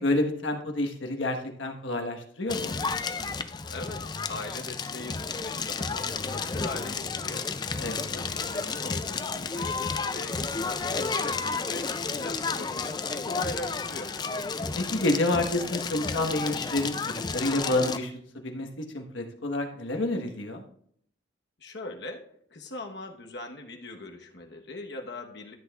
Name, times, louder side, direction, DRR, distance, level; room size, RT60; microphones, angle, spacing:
voice 1, 0.0-2.8 7.8-8.2 14.7-18.1 18.4-20.6, left 2 dB, 80° left, 4 dB, 1.3 m, -29 dB
Crackle, 2.5-18.0, left 4 dB, 20° left, 0.3 m, -32 dB
voice 2, 3.7-7.5 7.8-14.1 21.6-22.2 22.5-25.5, left 2 dB, 60° left, 3 dB, 1.1 m, -40 dB
13.5 x 7.9 x 2.4 m, 0.64 s
head